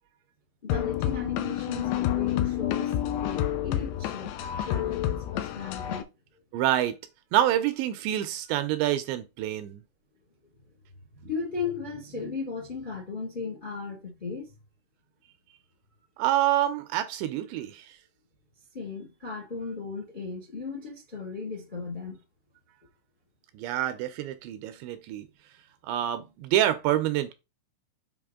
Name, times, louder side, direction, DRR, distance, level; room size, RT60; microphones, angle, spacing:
voice 1, 0.6-4.4 4.6-6.1 11.2-14.6 18.7-22.2, left 5 dB, 50° left, 0.5 m, -36 dB
sound 1, 0.7-6.0, left 11 dB, 80° left, 2.5 m, -29 dB
voice 2, 6.5-6.9 7.3-9.8 16.2-17.9 23.6-25.3 25.8-27.3, right 12 dB, 80° right, 2.7 m, -27 dB
7.7 x 5.1 x 3.7 m
omnidirectional pair, 5.5 m